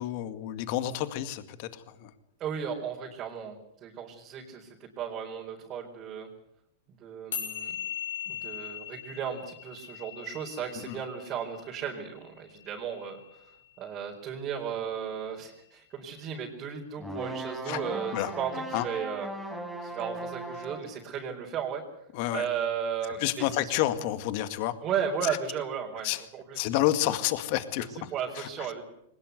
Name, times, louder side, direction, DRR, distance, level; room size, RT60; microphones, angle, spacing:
voice 1, 0.0-2.1 10.8-11.0 17.7-17.8 18.1-18.3 18.7-18.9 22.1-22.5 23.2-24.7 25.2-25.4 26.0-26.2 26.5-28.5, left 14 dB, 55° left, 11 dB, 2.1 m, -30 dB
voice 2, 2.4-6.3 7.0-7.7 8.3-13.5 13.8-19.3 19.8-21.8 22.3-23.8 24.8-26.7 28.1-28.8, right 8 dB, 30° right, -1 dB, 4.4 m, -35 dB
sound 1, 7.3-13.9, left 9 dB, 85° left, 7.7 m, -40 dB
sound 2, 17.0-21.0, right 1 dB, ahead, 4.7 m, -37 dB
22.0 x 20.0 x 8.2 m, 0.79 s
hypercardioid pair, 130°, 0 cm